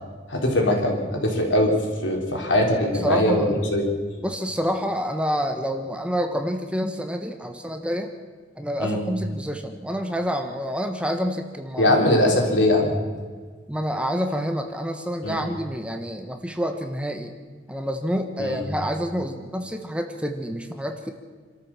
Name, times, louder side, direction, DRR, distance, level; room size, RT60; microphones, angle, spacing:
voice 1, 0.3-1.7 2.0-3.9 8.8-9.0 11.8-12.9 15.2-15.4 18.4-18.6, left 1 dB, 90° left, 0 dB, 4.1 m, -21 dB
voice 2, 3.0-3.5 4.2-8.1 8.6-12.0 13.7-17.3 17.7-21.1, equal, 5° right, 5 dB, 1.2 m, -28 dB
27.0 x 13.0 x 7.4 m, 1.6 s
head